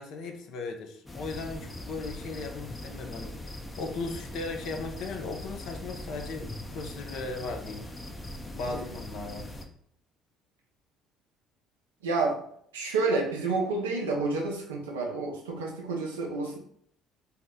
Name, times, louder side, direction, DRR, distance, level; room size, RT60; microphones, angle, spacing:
voice 1, 0.0-7.9 8.5-9.5, left 3 dB, 65° left, 3 dB, 0.5 m, -37 dB
sound 1, 1.1-9.7, left 1 dB, 20° left, 0.5 m, -41 dB
voice 2, 12.0-12.4 12.7-16.6, right 3 dB, 90° right, 0 dB, 0.5 m, -29 dB
2.7 x 2.0 x 3.5 m, 0.67 s
hypercardioid pair, 60°, 0 cm